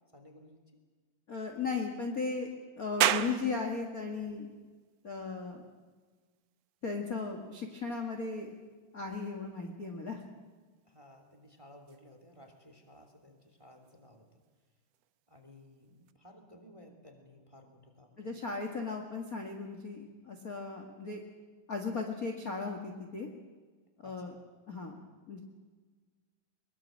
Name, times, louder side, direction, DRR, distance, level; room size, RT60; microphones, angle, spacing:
voice 1, 0.1-0.6 10.9-14.3 15.3-18.4 24.0-24.4, left 1 dB, 10° right, 5 dB, 2.4 m, -56 dB
voice 2, 1.3-2.5 2.8-4.5 5.0-5.6 6.8-8.5 8.9-10.2 18.2-21.2 21.7-23.3 24.0-24.3 24.7-25.0 25.3-25.4, left 4 dB, 35° left, 2 dB, 1.7 m, -36 dB
sound 1, 3.0-16.1, right 11 dB, 75° right, 1.5 m, -40 dB
22.5 x 22.0 x 7.6 m, 1.4 s
omnidirectional pair, 4.0 m